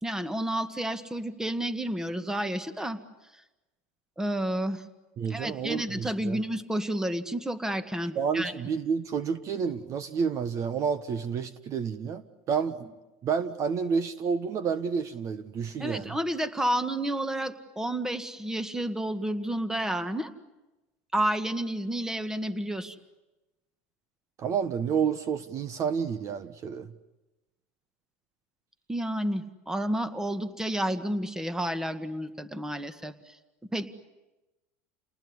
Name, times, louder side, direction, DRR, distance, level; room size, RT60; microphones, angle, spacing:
voice 1, 0.0-3.0 4.2-4.8 5.3-8.5 15.8-20.3 21.1-23.0 28.9-33.4 33.7-33.9, right 1 dB, 5° right, 10 dB, 1.8 m, -30 dB
voice 2, 5.2-6.4 8.1-12.9 13.2-16.2 24.4-26.9, right 6 dB, 40° right, 12 dB, 1.3 m, -30 dB
29.5 x 19.5 x 9.7 m, 1.1 s
supercardioid pair, 110°, 8 cm